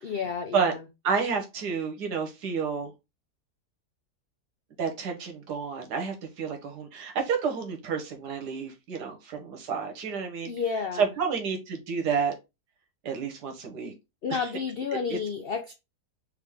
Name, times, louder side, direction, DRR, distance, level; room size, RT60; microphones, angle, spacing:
voice 1, 0.0-0.8 10.4-11.1 14.2-15.7, left 6 dB, 75° left, 0.5 m, -31 dB
voice 2, 1.0-2.9 4.8-10.5 11.0-12.3 13.0-13.9 14.3-14.5 15.1-15.2, right 5 dB, 75° right, 1.6 m, -30 dB
3.5 x 3.4 x 3.4 m
omnidirectional pair, 1.7 m